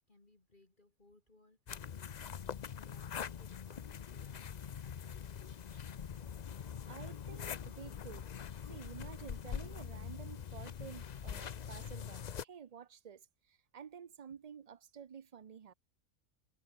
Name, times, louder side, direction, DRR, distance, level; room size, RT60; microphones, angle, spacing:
voice 1, 0.1-1.9 2.2-2.4 2.7-4.5 4.8-5.8, left 2 dB, 35° left, 3.1 m, -66 dB
sound 1, 1.7-12.4, left 8 dB, 55° left, 0.4 m, -44 dB
voice 2, 6.9-8.3 8.7-15.7, right 7 dB, 55° right, 0.4 m, -51 dB
omnidirectional pair, 1.5 m